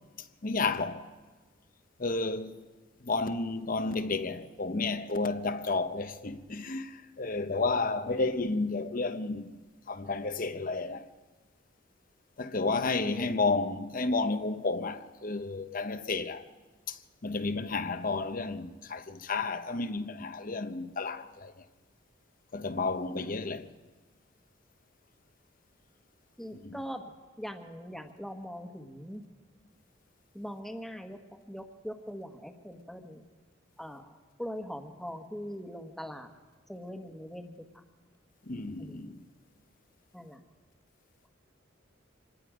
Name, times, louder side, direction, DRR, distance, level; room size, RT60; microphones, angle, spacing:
voice 1, 0.4-1.0 2.0-2.5 3.0-9.5 9.9-11.1 12.4-16.4 16.9-21.5 22.5-23.7 26.5-26.8 38.5-39.2, left 3 dB, 45° left, 0.9 m, -31 dB
voice 2, 26.4-27.1 27.4-29.2 30.3-31.2 31.5-33.2 33.8-34.1 34.4-36.3 36.7-37.8 38.8-39.2 40.1-40.4, equal, ahead, 1.4 m, -41 dB
26.0 x 20.0 x 5.0 m
head